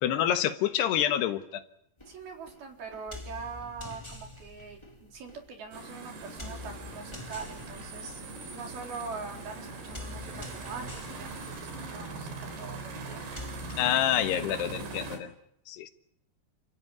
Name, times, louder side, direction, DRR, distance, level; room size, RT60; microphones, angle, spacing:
voice 1, 0.0-1.6 13.8-15.3 15.7-15.9, left 11 dB, 85° left, 9 dB, 3.5 m, -27 dB
sound 1, 2.0-13.8, left 2 dB, 10° left, 1.5 m, -46 dB
voice 2, 2.1-8.2 8.5-13.4, right 5 dB, 65° right, 2 dB, 6.1 m, -43 dB
sound 2, 5.7-15.2, right 3 dB, 85° right, 5.9 m, -41 dB
29.5 x 15.5 x 9.5 m, 0.75 s
omnidirectional pair, 4.6 m